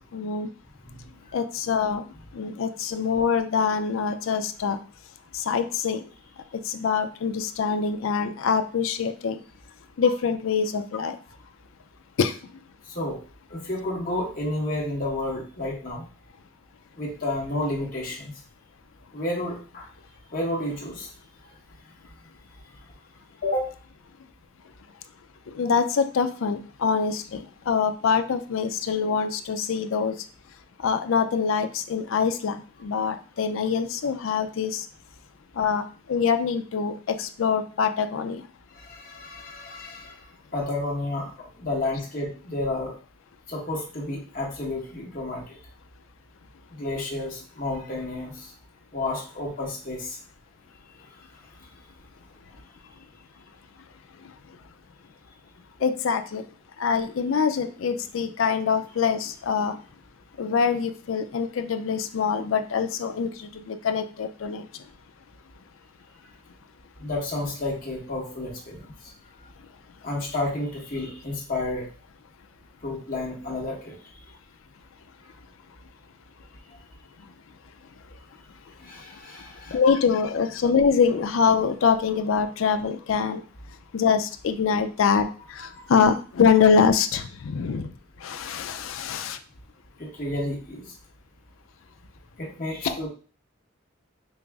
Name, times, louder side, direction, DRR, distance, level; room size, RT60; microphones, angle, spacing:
voice 1, 0.1-0.5 1.3-2.0 2.3-4.8 5.3-6.0 6.6-9.4 10.0-11.2 12.2-12.3 25.5-30.2 30.8-34.9 35.6-38.4 55.8-56.5 56.8-59.8 60.4-64.7 79.7-83.4 83.9-87.9 88.2-89.4, left 6 dB, 75° left, 9 dB, 0.4 m, -24 dB
voice 2, 0.8-1.3 12.9-13.2 13.5-16.0 17.0-18.3 19.1-19.9 20.3-21.1 23.4-23.7 38.7-40.2 40.5-42.9 43.5-45.6 46.7-48.5 48.9-50.2 67.0-68.9 70.0-71.9 72.8-74.0 78.8-79.9 85.7-85.9 90.0-90.9 92.4-93.1, left 2 dB, 40° left, -3 dB, 1.1 m, -31 dB
5.2 x 2.0 x 3.4 m, 0.38 s
head